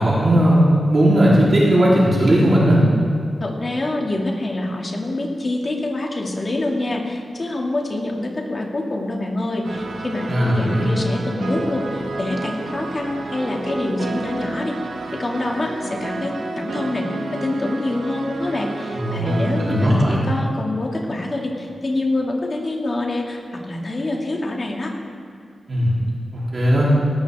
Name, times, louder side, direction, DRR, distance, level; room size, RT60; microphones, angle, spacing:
voice 1, 0.0-2.8 10.3-10.9 18.9-19.3 19.6-20.2 25.7-25.9 26.5-26.9, equal, 40° right, -7 dB, 3.7 m, -17 dB
voice 2, 3.4-14.7 15.2-24.9, left 2 dB, 35° left, -1 dB, 2.5 m, -25 dB
sound 1, 9.6-19.9, right 2 dB, 85° right, 1.7 m, -31 dB
18.5 x 18.0 x 3.7 m, 2.4 s
wide cardioid pair, 140°, 0 cm